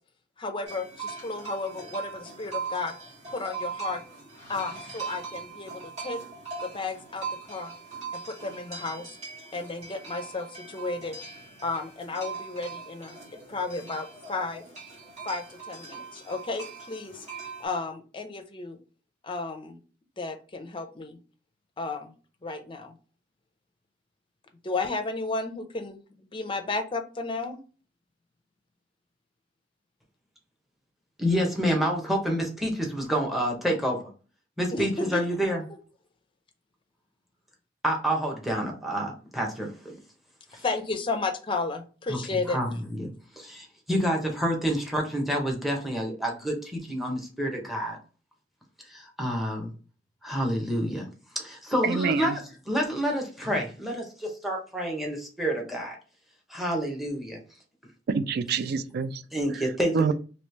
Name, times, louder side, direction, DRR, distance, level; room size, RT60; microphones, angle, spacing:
voice 1, 0.4-2.9 3.3-4.0 4.5-6.2 6.6-7.7 8.1-9.1 9.5-11.2 11.6-13.2 13.5-14.7 15.2-18.8 19.2-19.8 20.2-21.2 21.8-22.1 22.4-23.0 24.6-27.6 34.7-35.2 40.6-42.6, left 3 dB, 30° left, 0.5 m, -33 dB
sound 1, 0.7-17.7, right 5 dB, 40° right, 1.6 m, -40 dB
voice 2, 31.2-34.1 34.6-35.6 37.8-40.0 40.5-40.6 42.1-42.2 42.5-42.7 42.9-43.1 43.4-48.0 48.9-49.7 50.2-51.1 51.3-56.0 56.5-57.4 59.3-60.1, equal, ahead, 0.8 m, -28 dB
voice 3, 51.8-52.4 58.1-59.2 59.9-60.1, right 5 dB, 60° right, 0.3 m, -26 dB
3.1 x 2.9 x 3.2 m
head